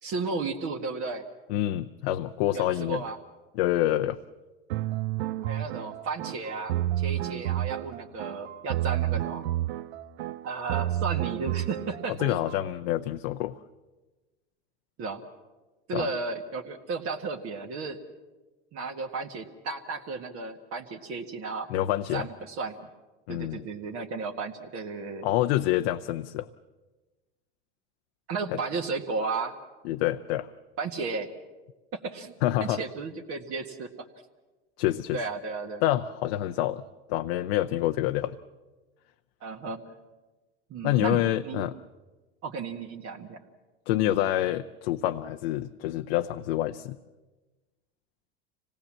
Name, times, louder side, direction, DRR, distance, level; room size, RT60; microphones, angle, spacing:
voice 1, 0.0-1.2 2.5-3.2 5.5-9.5 10.4-12.4 15.0-15.2 15.9-18.0 18.7-21.7 22.1-22.9 23.3-25.3 28.3-29.6 30.8-31.3 31.9-32.3 32.6-33.9 35.1-35.8 39.4-39.8 40.7-41.7 42.4-43.4 44.0-44.3, right 4 dB, 50° right, 1 dB, 1.7 m, -34 dB
voice 2, 1.5-3.0 3.5-4.2 12.2-13.6 15.9-16.1 21.7-22.3 23.3-23.6 25.2-26.5 29.8-30.5 32.4-32.8 34.8-35.2 35.8-36.8 37.1-38.4 40.8-41.7 43.9-47.0, left 14 dB, 75° left, 7 dB, 0.7 m, -27 dB
sound 1, 4.7-12.6, right 14 dB, 85° right, 0.7 m, -30 dB
25.5 x 18.0 x 7.5 m, 1.2 s
supercardioid pair, 110°, 30 cm